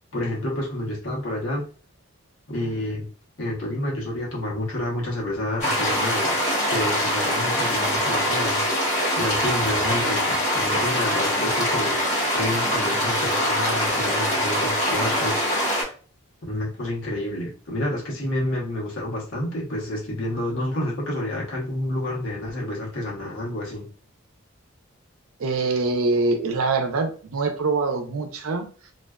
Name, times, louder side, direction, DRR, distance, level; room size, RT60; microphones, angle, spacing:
voice 1, 0.1-1.6 2.5-3.1 3.4-6.4 6.7-15.9 16.4-23.9, left 1 dB, 70° left, -3 dB, 0.9 m, -29 dB
sound 1, 5.6-15.8, equal, 35° left, 1.1 m, -23 dB
voice 2, 25.4-28.9, right 3 dB, 90° right, 6 dB, 0.5 m, -24 dB
2.4 x 2.3 x 2.2 m, 0.40 s
head